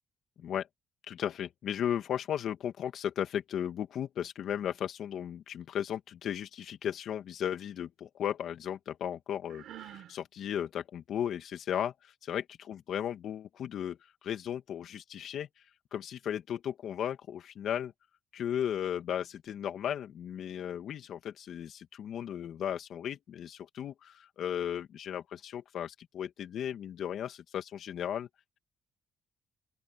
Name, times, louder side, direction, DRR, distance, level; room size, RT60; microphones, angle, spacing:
voice 1, 1.1-15.5 15.9-17.9 18.3-28.3, left 9 dB, 70° left, 2.6 m, -35 dB
Sigh, 9.5-10.1, right 12 dB, 75° right, 7.0 m, -47 dB
open air
cardioid pair, 90°, 0 cm